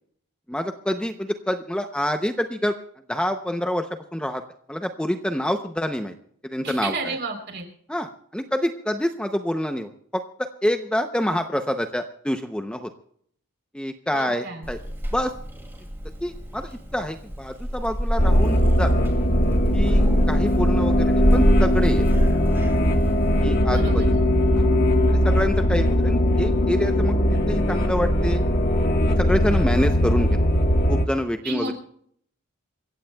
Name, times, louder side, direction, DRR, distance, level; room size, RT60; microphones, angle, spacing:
voice 1, 0.5-2.7 3.1-4.4 4.7-6.1 6.4-7.1 7.9-12.9 13.7-14.8 15.1-15.3 16.2-18.9 19.7-20.0 20.3-22.1 23.4-24.1 24.5-24.7 25.1-28.4 29.2-30.3 30.9-31.7, equal, 5° left, 6 dB, 0.6 m, -27 dB
voice 2, 6.6-7.7 14.1-14.7 23.7-24.3 31.4-31.7, right 3 dB, 50° right, 3 dB, 3.6 m, -32 dB
Purr / Meow, 14.6-23.4, equal, 10° right, 2.4 m, -27 dB
sound 1, 18.2-31.0, equal, 40° left, 1.4 m, -20 dB
28.5 x 15.5 x 2.3 m, 0.65 s
head